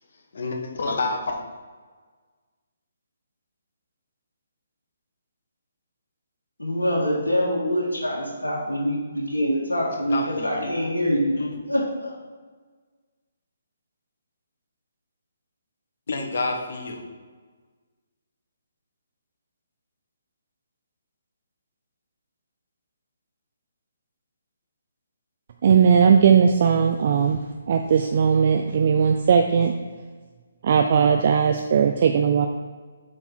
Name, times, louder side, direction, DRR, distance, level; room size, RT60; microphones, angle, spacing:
voice 1, 0.3-1.4 10.1-10.7 11.4-11.5 16.1-17.0, left 3 dB, 60° left, 2 dB, 1.3 m, -28 dB
voice 2, 6.6-12.1, equal, 90° left, -4 dB, 1.7 m, -25 dB
voice 3, 25.6-27.4 27.7-29.7 30.6-32.5, right 7 dB, 50° right, 5 dB, 0.5 m, -18 dB
7.5 x 4.0 x 4.5 m, 1.5 s
figure-of-eight pair, 140°, 0 cm